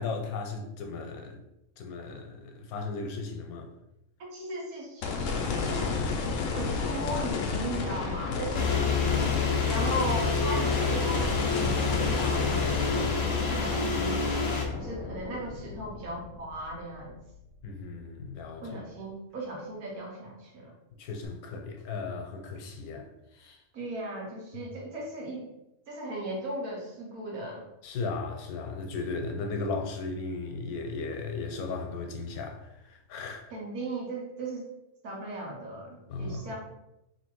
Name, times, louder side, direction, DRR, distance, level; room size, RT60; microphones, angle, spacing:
voice 1, 0.0-1.4 1.8-3.7 17.6-18.8 21.0-23.6 24.5-24.6 27.8-33.5 36.1-36.5, left 3 dB, 90° left, 1.1 m, -36 dB
voice 2, 4.3-6.0 6.4-9.0 9.7-14.2 14.7-17.2 18.6-20.7 23.7-25.4 25.9-27.7 33.5-34.7 35.0-36.6, right 1 dB, 90° right, 1.5 m, -37 dB
sound 1, 5.0-17.3 17.8-17.9 21.2-21.3, left 4 dB, 70° left, 0.9 m, -32 dB
sound 2, 8.5-14.6, left 4 dB, 50° left, 0.4 m, -28 dB
3.1 x 2.7 x 4.5 m
omnidirectional pair, 1.5 m